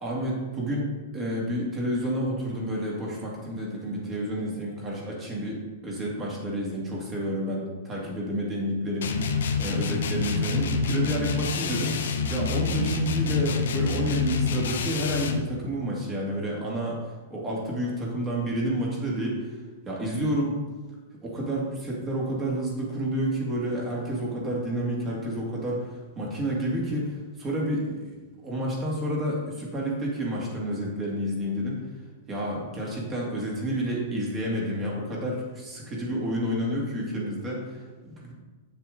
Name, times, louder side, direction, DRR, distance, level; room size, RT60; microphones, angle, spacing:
voice 1, 0.0-9.2 9.6-17.0 17.3-19.6 19.9-20.6 21.2-31.8 32.3-38.3, equal, 20° right, -3 dB, 2.0 m, -30 dB
sound 1, 9.0-15.5, left 5 dB, 80° left, 0.9 m, -27 dB
8.0 x 7.0 x 3.8 m, 1.3 s
supercardioid pair, 160°, 0 cm